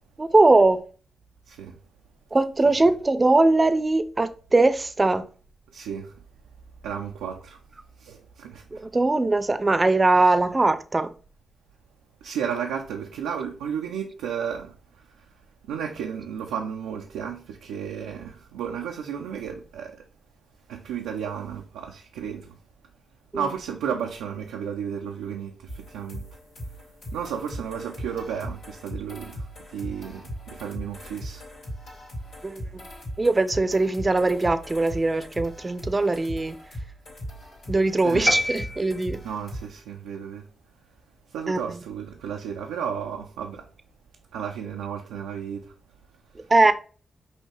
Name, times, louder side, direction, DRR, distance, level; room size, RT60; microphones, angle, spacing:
voice 1, 0.2-0.8 2.3-5.2 8.7-11.1 23.3-23.4 32.4-32.9 33.2-36.6 37.7-39.2 41.5-41.8 46.4-46.7, right 2 dB, 35° right, 0.5 m, -21 dB
voice 2, 1.5-1.8 2.8-2.9 5.7-6.2 6.8-7.6 8.0-8.8 10.2-10.4 12.2-15.3 15.6-20.1 20.7-22.6 23.3-26.3 27.1-31.4 38.0-38.3 39.2-40.5 41.3-43.7 44.3-45.7 46.4-46.7, right 7 dB, 90° right, 0.4 m, -33 dB
sound 1, 25.7-39.7, equal, 85° left, 2.3 m, -39 dB
sound 2, 38.3-39.5, left 1 dB, 20° left, 1.1 m, -26 dB
5.4 x 2.8 x 3.3 m
supercardioid pair, 40°, 0 cm